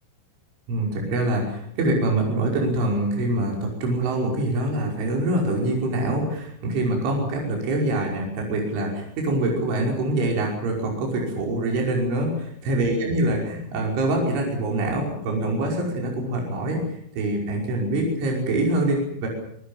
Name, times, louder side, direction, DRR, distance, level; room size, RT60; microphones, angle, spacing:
voice 1, 0.7-16.8 17.2-19.3, right 1 dB, 65° right, 0 dB, 7.9 m, -24 dB
26.5 x 20.0 x 7.2 m, 0.70 s
omnidirectional pair, 5.9 m